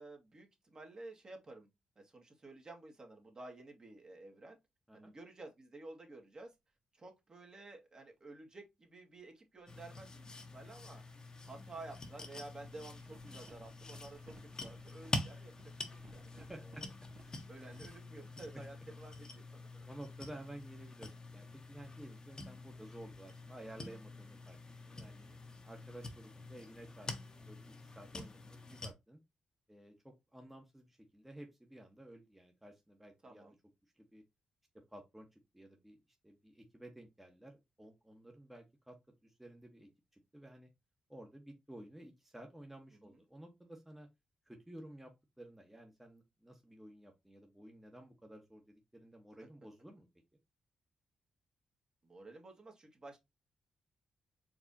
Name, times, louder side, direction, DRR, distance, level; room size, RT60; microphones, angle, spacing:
voice 1, 0.0-1.7 2.0-4.6 4.9-6.5 6.9-11.0 11.5-16.5 17.5-19.6 25.0-25.4 33.2-33.6 42.9-43.2 52.0-53.2, right 2 dB, 40° right, 1.8 m, -52 dB
sound 1, 8.2-8.3 10.1-10.2 10.6-11.2 11.6-18.0, right 4 dB, 55° right, 1.2 m, -62 dB
sound 2, 9.7-28.9, left 2 dB, 35° left, 1.1 m, -47 dB
voice 2, 16.4-16.9 17.2-17.4 18.5-18.6 19.8-24.6 24.9-25.2 25.6-29.2 29.7-33.5 33.9-34.2 34.9-36.0 36.2-38.9 39.2-40.7 41.1-44.1 44.4-45.1 45.4-50.1, right 1 dB, 10° right, 1.2 m, -53 dB
4.7 x 3.5 x 2.8 m
cardioid pair, 60°, 2 cm